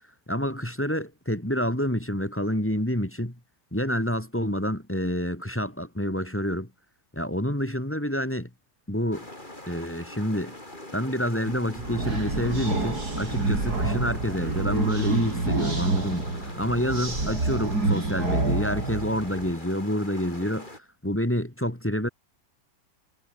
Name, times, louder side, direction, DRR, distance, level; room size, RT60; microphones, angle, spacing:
voice 1, 0.3-3.4 3.7-6.7 7.1-8.5 8.9-9.3 9.7-10.6 10.9-16.3 16.6-22.1, equal, 10° left, 2.2 m, -28 dB
sound 1, 9.1-20.8, left 1 dB, 30° left, 5.9 m, -43 dB
sound 2, 11.5-19.5, right 2 dB, 90° right, 6.2 m, -28 dB
omnidirectional pair, 1.6 m